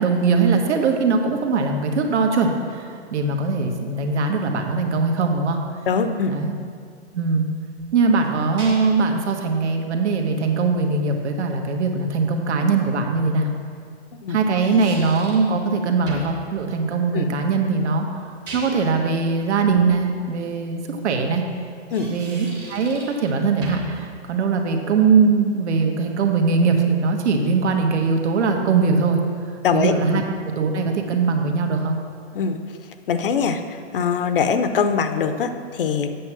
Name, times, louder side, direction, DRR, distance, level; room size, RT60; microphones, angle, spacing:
voice 1, 0.0-5.6 6.3-6.5 7.1-7.5 7.9-13.5 14.3-21.4 22.1-29.2 29.7-30.2 30.5-32.0, right 4 dB, 80° right, 3 dB, 1.3 m, -21 dB
voice 2, 5.9-6.3 14.2-14.4 17.1-17.3 21.9-22.1 29.6-30.2 32.3-32.6 33.1-36.1, left 6 dB, 50° left, 9 dB, 0.6 m, -22 dB
sound 1, 7.8-9.1 12.3-12.4 14.3-15.5 16.1-16.4 18.2-19.0 21.7-23.3 23.6-24.0, right 2 dB, 10° right, 0.8 m, -38 dB
8.4 x 6.8 x 6.0 m, 2.2 s
hypercardioid pair, 175°, 34 cm